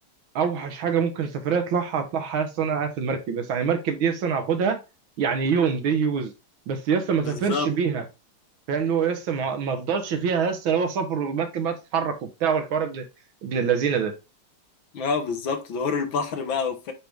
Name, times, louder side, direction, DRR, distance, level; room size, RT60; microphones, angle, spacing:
voice 1, 0.4-4.8 5.2-6.3 6.7-8.0 8.7-13.0 13.4-14.2, right 6 dB, 70° right, 1.7 m, -25 dB
voice 2, 7.2-7.7 14.9-16.9, left 5 dB, 65° left, 1.7 m, -27 dB
9.1 x 3.3 x 3.4 m
omnidirectional pair, 2.4 m